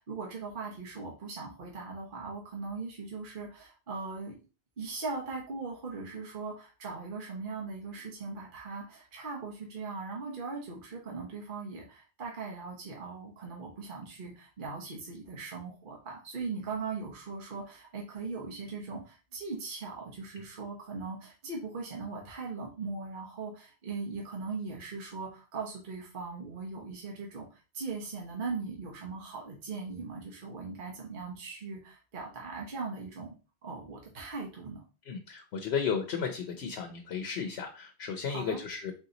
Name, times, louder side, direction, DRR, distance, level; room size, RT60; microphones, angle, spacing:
voice 1, 0.0-4.4 4.8-33.4 33.6-34.8 38.3-38.6, right 4 dB, 55° right, -2 dB, 1.1 m, -39 dB
voice 2, 35.1-38.9, left 6 dB, 80° left, 4 dB, 0.9 m, -34 dB
4.1 x 2.8 x 3.8 m, 0.33 s
omnidirectional pair, 1.1 m